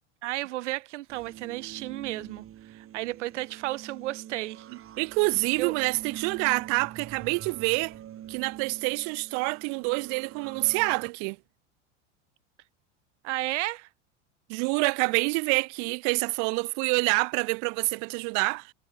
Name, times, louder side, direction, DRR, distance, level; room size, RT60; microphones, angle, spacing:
voice 1, 0.2-4.7 5.6-5.7 13.2-13.9, right 17 dB, 70° right, 2.2 m, -33 dB
sound 1, 1.1-11.1, right 11 dB, 35° right, 3.9 m, -45 dB
voice 2, 4.7-7.9 8.3-11.4 14.5-18.7, right 40 dB or more, 55° right, 0.8 m, -27 dB
hypercardioid pair, 95°, 37 cm